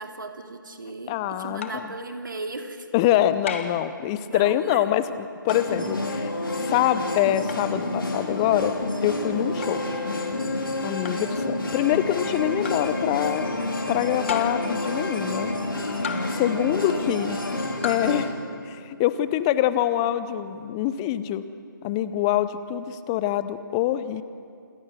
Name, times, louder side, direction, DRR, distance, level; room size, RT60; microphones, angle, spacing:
voice 1, 0.0-2.9 4.3-5.0, right 2 dB, 70° right, 5 dB, 2.5 m, -36 dB
voice 2, 1.1-1.7 2.9-6.3 6.6-8.7 9.0-9.8 10.8-13.4 13.9-15.5 16.3-17.4 17.8-18.3 18.7-21.4 21.8-24.2, left 12 dB, 15° left, 14 dB, 0.5 m, -25 dB
sound 1, 1.6-1.9 3.5-3.9 5.5-5.8 7.5-7.7 9.6-9.8 11.0-11.3 12.6-12.9 14.3-14.7 16.0-16.5 17.8-18.1, left 6 dB, 35° left, 1.6 m, -34 dB
sound 2, 5.5-18.3, left 2 dB, 80° left, 3.8 m, -29 dB
27.5 x 21.5 x 6.5 m, 2.3 s
figure-of-eight pair, 155°, 11 cm